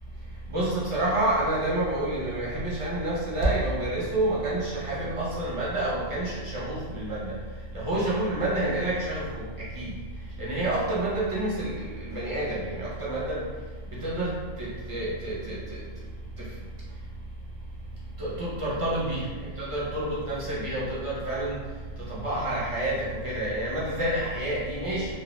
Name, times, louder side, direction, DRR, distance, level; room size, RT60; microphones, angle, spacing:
voice 1, 0.5-7.4 7.7-9.9 10.4-13.5 13.9-15.8 16.4-16.5 18.2-21.6 22.0-25.2, right 1 dB, 40° right, -7 dB, 0.5 m, -29 dB
2.3 x 2.2 x 3.0 m, 1.5 s
omnidirectional pair, 1.3 m